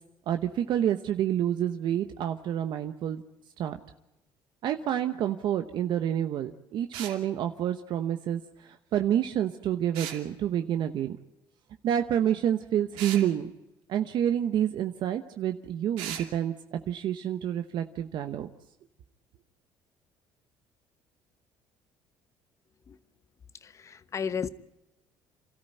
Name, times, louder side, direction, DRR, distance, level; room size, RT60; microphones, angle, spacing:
voice 1, 0.3-3.2 3.6-3.8 4.6-11.2 11.8-13.5 13.9-18.5, right 10 dB, 60° right, 1.0 m, -28 dB
sound 1, 6.9-7.2 9.9-10.2 13.0-13.3 16.0-16.3, right 10 dB, 90° right, 2.6 m, -37 dB
voice 2, 23.6-24.5, left 6 dB, 35° left, 1.0 m, -33 dB
28.5 x 13.5 x 9.2 m
cardioid pair, 105°, 9 cm